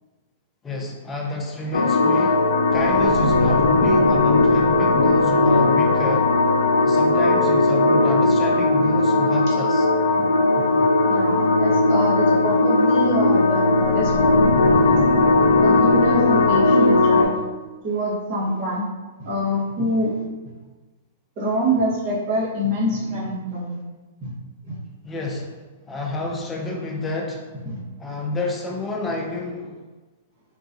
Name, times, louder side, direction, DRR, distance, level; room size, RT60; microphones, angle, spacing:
voice 1, 0.6-6.4 6.8-9.9 25.0-27.5 28.0-29.8, left 2 dB, 15° left, -2 dB, 0.6 m, -29 dB
sound 1, 1.7-17.2, left 2 dB, 70° left, 0.4 m, -18 dB
voice 2, 10.6-15.0 15.6-17.3 17.8-18.9 19.2-20.3 21.4-23.8 24.2-24.3 24.6-24.8 27.6-27.8, equal, 45° right, -6 dB, 1.2 m, -25 dB
3.9 x 2.4 x 2.6 m, 1.2 s
hypercardioid pair, 115°, 0 cm